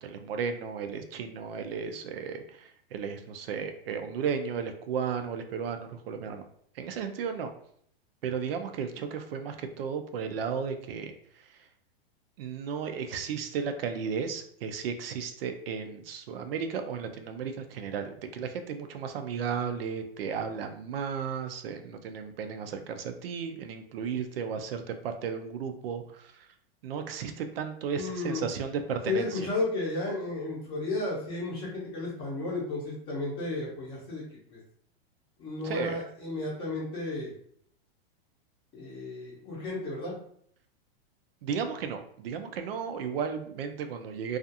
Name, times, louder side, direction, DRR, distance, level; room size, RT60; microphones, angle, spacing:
voice 1, 0.0-6.4 6.8-7.5 8.2-11.1 12.4-26.5 26.8-29.5 35.6-36.0 41.4-44.4, right 6 dB, 70° right, 7 dB, 0.5 m, -34 dB
voice 2, 27.9-28.4 29.0-34.2 34.5-34.6 35.4-37.3 38.7-40.1, left 2 dB, 15° left, -5 dB, 0.6 m, -33 dB
2.4 x 2.4 x 2.7 m, 0.65 s
supercardioid pair, 170°, 30 cm